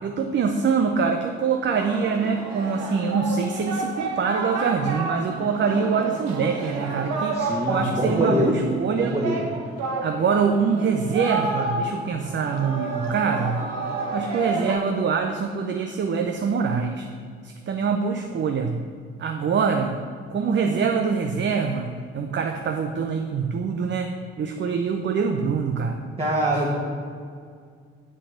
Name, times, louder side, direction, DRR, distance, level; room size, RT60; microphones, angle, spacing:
voice 1, 0.0-9.2 10.0-13.6 14.1-17.1 17.4-18.8 19.2-20.0 20.3-26.1 26.5-26.6, right 5 dB, 35° right, 5 dB, 0.8 m, -24 dB
Singing, 1.7-14.8, right 3 dB, 60° right, 1.5 m, -30 dB
voice 2, 7.3-8.5 9.0-9.4 26.2-26.8, right 1 dB, 20° right, -5 dB, 1.9 m, -24 dB
7.9 x 6.5 x 7.6 m, 2.1 s
figure-of-eight pair, 45°, 31 cm